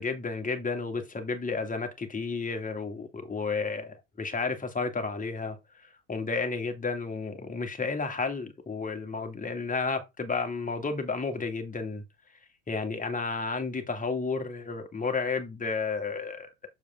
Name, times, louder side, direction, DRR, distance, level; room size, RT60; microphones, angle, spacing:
voice 1, 0.0-5.6 6.1-12.0 12.7-16.5, left 4 dB, 15° left, 2.1 m, -32 dB
7.1 x 4.9 x 3.7 m
hypercardioid pair, 85°, 45 cm